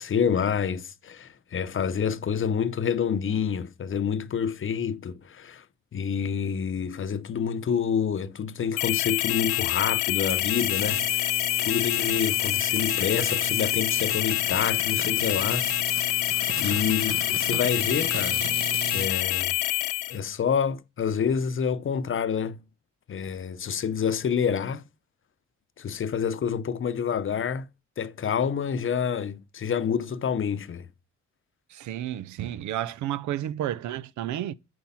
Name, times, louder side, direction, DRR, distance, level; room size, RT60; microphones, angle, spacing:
voice 1, 0.0-5.6 5.9-11.3 11.6-15.7 16.6-18.5 18.9-19.5 20.1-22.6 23.1-24.8 25.8-27.7 28.0-30.9, left 7 dB, 40° left, 0.8 m, -28 dB
sound 1, 8.8-20.2, left 16 dB, 80° left, 0.6 m, -26 dB
sound 2, 10.1-19.1, right 6 dB, 45° right, 1.3 m, -36 dB
voice 2, 31.7-34.5, right 12 dB, 75° right, 0.6 m, -31 dB
8.5 x 4.6 x 5.7 m
cardioid pair, 90°, 30 cm